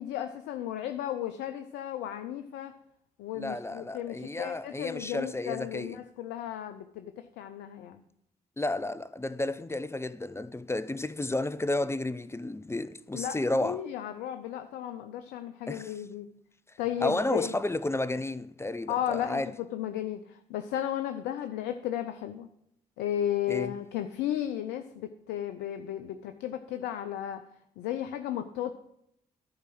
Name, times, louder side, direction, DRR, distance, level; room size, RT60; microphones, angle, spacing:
voice 1, 0.0-2.7 3.2-8.0 13.1-16.3 16.8-17.5 18.9-19.4 19.7-22.5 23.0-27.4 27.8-28.7, left 11 dB, 75° left, 0.6 m, -34 dB
voice 2, 3.3-6.0 8.6-13.8 15.7-15.9 17.0-19.5 23.5-23.8, left 2 dB, 15° left, 0.6 m, -32 dB
11.0 x 4.8 x 7.8 m
hypercardioid pair, 45°, 18 cm